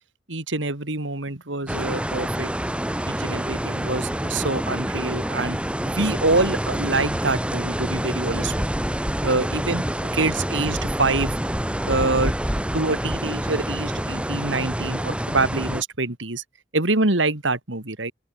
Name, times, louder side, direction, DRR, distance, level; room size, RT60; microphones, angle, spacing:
voice 1, 0.3-2.5 3.0-8.5 9.2-9.8 10.1-11.3 11.9-12.3 12.7-16.4 16.7-18.1, right 3 dB, 75° right, 2.9 m, -25 dB
sound 1, 1.7-15.8, equal, 5° right, 1.3 m, -27 dB
open air
head